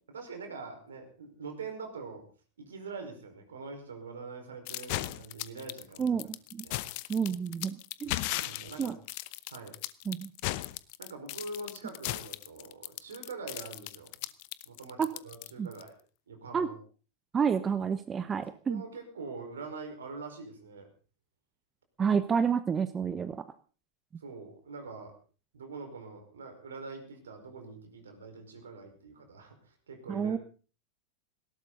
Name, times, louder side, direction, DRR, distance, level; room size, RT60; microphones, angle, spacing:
voice 1, 0.1-2.2 2.6-6.1 6.6-6.7 8.3-8.9 9.5-9.8 11.0-14.2 14.6-15.9 16.3-16.8 18.4-20.9 24.2-25.1 25.5-30.4, right 4 dB, 65° right, 5 dB, 4.9 m, -44 dB
sound 1, 4.7-15.9, left 18 dB, 45° left, 0.8 m, -37 dB
voice 2, 6.0-6.6 7.1-8.1 8.8-9.0 10.1-10.3 15.0-15.1 15.6-15.7 16.5-16.7 17.3-18.8 22.0-23.4 30.1-30.4, right 6 dB, 20° right, 12 dB, 1.0 m, -29 dB
19.0 x 17.5 x 4.0 m, 0.38 s
figure-of-eight pair, 90°, 0 cm